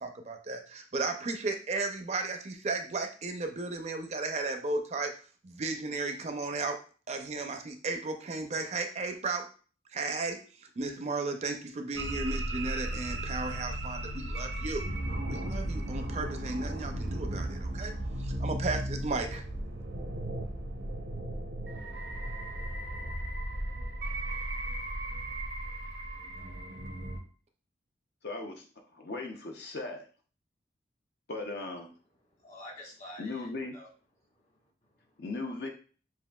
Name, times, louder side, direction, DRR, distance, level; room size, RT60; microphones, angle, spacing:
voice 1, 0.0-5.1 5.4-6.8 7.1-9.5 9.9-14.8 15.3-17.9 18.2-19.4, right 3 dB, 35° right, 5 dB, 0.4 m, -34 dB
sound 1, 12.0-27.2, right 1 dB, 85° right, 0.7 m, -35 dB
voice 2, 28.2-28.7 28.9-30.1 31.3-31.9 33.2-33.8 35.2-35.7, left 2 dB, 60° left, 3 dB, 0.5 m, -37 dB
voice 3, 32.2-33.9 34.2-35.2, left 1 dB, 40° left, -1 dB, 1.3 m, -50 dB
7.3 x 2.5 x 2.2 m, 0.40 s
head